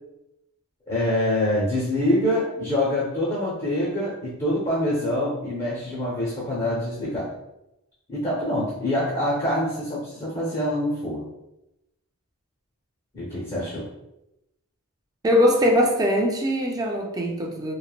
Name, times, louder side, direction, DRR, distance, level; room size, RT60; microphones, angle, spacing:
voice 1, 0.9-7.3 8.1-11.3 13.1-13.9, left 1 dB, 30° left, -6 dB, 0.6 m, -25 dB
voice 2, 15.2-17.7, equal, 15° right, 1 dB, 0.3 m, -21 dB
3.1 x 2.0 x 2.3 m, 0.90 s
head